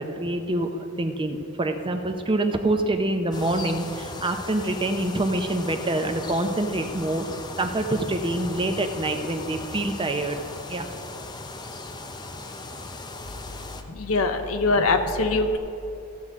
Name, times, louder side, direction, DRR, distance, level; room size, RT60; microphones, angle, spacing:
voice 1, 0.0-7.3 7.6-10.4 10.7-10.9, right 1 dB, 25° right, 6 dB, 0.6 m, -26 dB
sound 1, 3.3-13.8, left 2 dB, 20° left, 0.6 m, -38 dB
voice 2, 13.9-15.6, left 3 dB, 80° left, 6 dB, 0.8 m, -23 dB
15.0 x 7.9 x 3.6 m, 2.6 s
head